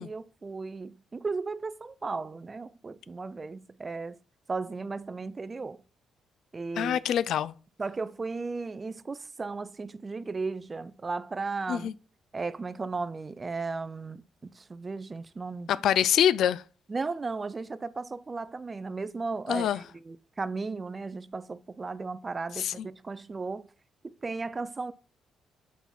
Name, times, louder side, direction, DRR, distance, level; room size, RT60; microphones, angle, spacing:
voice 1, 0.0-4.2 4.5-5.8 6.5-7.0 7.8-11.9 12.3-15.7 16.9-23.6 24.0-24.9, right 4 dB, 30° right, 0.5 m, -35 dB
voice 2, 6.8-7.5 11.7-11.9 15.7-16.6 19.5-19.8 22.6-22.9, left 10 dB, 75° left, 0.4 m, -25 dB
8.2 x 5.7 x 4.2 m
cardioid pair, 90°, 0 cm